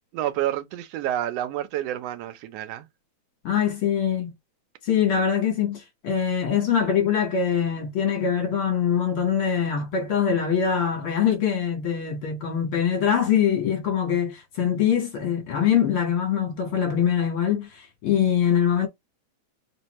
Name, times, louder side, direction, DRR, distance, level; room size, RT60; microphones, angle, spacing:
voice 1, 0.1-2.9, right 12 dB, 70° right, 1.6 m, -29 dB
voice 2, 3.4-4.3 4.8-18.9, left 8 dB, 55° left, 1.8 m, -23 dB
4.4 x 2.5 x 3.0 m
omnidirectional pair, 3.3 m